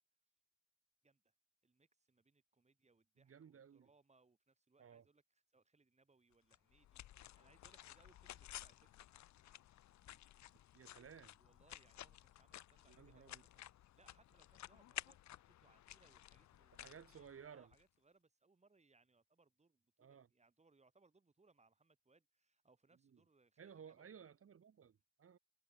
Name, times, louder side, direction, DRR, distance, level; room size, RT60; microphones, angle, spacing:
voice 1, 1.0-1.3 1.6-8.9 11.4-24.2, right 3 dB, 20° right, 4.8 m, -73 dB
voice 2, 3.2-3.9 4.8-5.0 10.7-11.4 12.9-13.4 16.7-17.7 20.0-20.3 23.1-23.2 23.6-25.4, right 7 dB, 50° right, 3.1 m, -58 dB
sound 1, 6.5-17.8, left 13 dB, 65° left, 1.0 m, -55 dB
cardioid pair, 90°, 30 cm